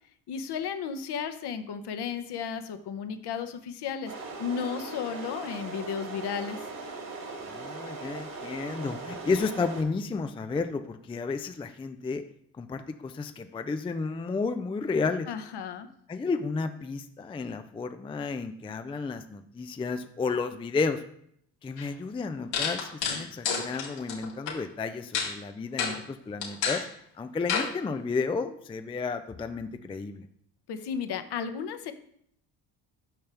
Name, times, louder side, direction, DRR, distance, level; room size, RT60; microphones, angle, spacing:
voice 1, 0.3-4.1 4.4-6.6 15.3-15.9 30.7-31.9, left 7 dB, 55° left, 9 dB, 1.0 m, -34 dB
sound 1, 4.1-9.8, right 3 dB, 45° right, 2.0 m, -39 dB
voice 2, 7.5-12.2 12.6-15.3 16.1-21.0 21.6-26.9 27.2-30.2, left 4 dB, 10° left, 8 dB, 0.4 m, -32 dB
sound 2, 21.8-21.9 22.5-24.5 25.1-25.3 25.8-26.0 26.4-26.9 27.5-27.7, left 6 dB, 80° left, 2.2 m, -29 dB
8.8 x 5.6 x 3.4 m, 0.69 s
supercardioid pair, 65°, 47 cm